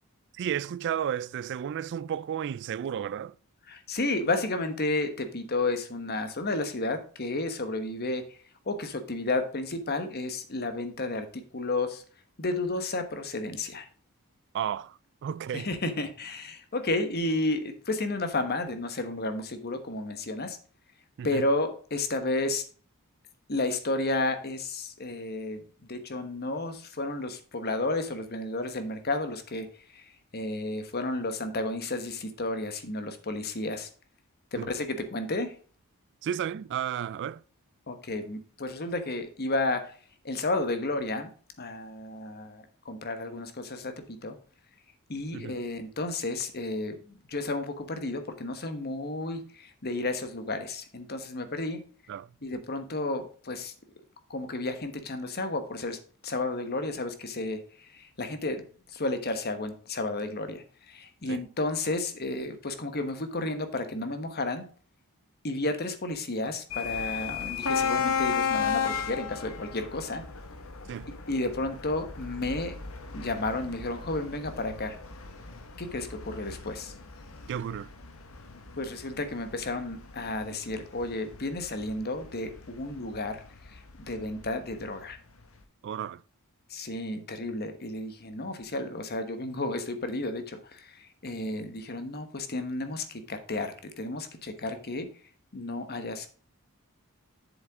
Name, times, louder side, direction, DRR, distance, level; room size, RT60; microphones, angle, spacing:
voice 1, 0.3-3.3 14.5-15.7 21.2-21.5 34.6-34.7 36.2-37.4 45.3-45.6 52.1-52.3 61.3-61.4 70.9-71.1 77.5-77.9 85.8-86.2, right 9 dB, 55° right, 0.3 m, -33 dB
voice 2, 3.7-8.4 8.7-12.0 12.4-13.9 15.5-20.6 21.2-22.6 23.5-25.6 25.9-33.9 34.5-35.5 37.9-40.0 40.2-41.3 41.6-44.4 45.1-51.8 52.4-53.7 54.3-58.6 58.9-64.7 65.4-70.2 71.3-72.7 73.1-75.0 75.8-76.9 78.8-83.4 83.7-83.8 84.1-85.2 86.7-95.1 95.5-96.3, left 2 dB, 45° left, 1.2 m, -32 dB
sound 1, 66.7-84.4, left 6 dB, 65° left, 1.4 m, -35 dB
7.7 x 7.3 x 3.6 m
head